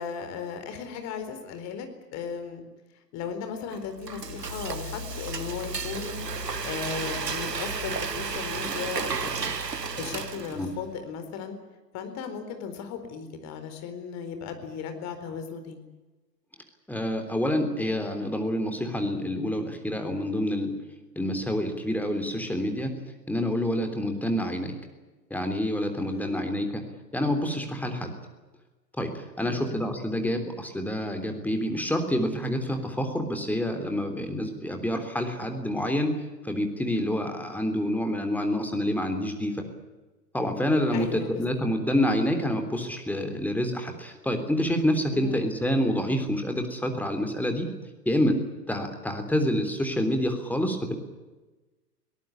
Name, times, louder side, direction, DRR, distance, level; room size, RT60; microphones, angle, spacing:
voice 1, 0.0-2.6 3.1-6.2 6.6-9.6 10.0-11.6 11.9-15.8 26.0-26.5 29.4-29.8 40.9-41.4 45.1-45.5, left 6 dB, 35° left, 8 dB, 4.2 m, -36 dB
Frying (food), 3.7-10.8, right 4 dB, 75° right, 1.8 m, -33 dB
voice 2, 16.9-20.7 21.1-22.9 23.3-24.8 25.3-26.9 27.1-28.1 29.0-36.2 36.4-39.6 40.3-47.7 48.0-48.4 48.7-51.0, left 1 dB, 5° left, 5 dB, 3.4 m, -27 dB
22.5 x 18.5 x 10.0 m, 1.2 s
figure-of-eight pair, 100°, 49 cm